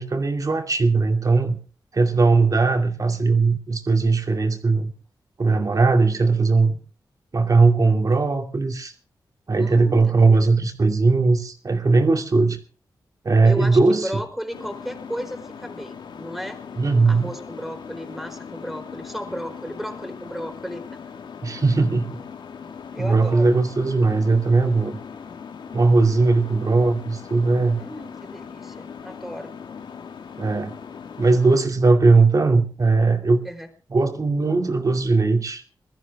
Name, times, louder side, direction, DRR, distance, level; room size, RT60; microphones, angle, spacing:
voice 1, 0.0-1.6 1.9-4.9 5.4-6.8 7.3-8.9 9.5-12.6 13.2-14.2 16.8-17.3 21.4-22.2 23.0-25.0 25.7-27.8 30.4-30.8 31.2-33.4 33.9-35.6, right 3 dB, 50° right, 5 dB, 2.6 m, -19 dB
voice 2, 9.6-10.4 13.4-16.6 17.1-21.0 22.9-23.5 27.8-29.5 33.4-33.7, equal, ahead, 5 dB, 4.6 m, -34 dB
sound 1, 14.5-31.6, left 6 dB, 80° left, 1.7 m, -39 dB
21.5 x 14.0 x 3.6 m, 0.38 s
cardioid pair, 70°, 8 cm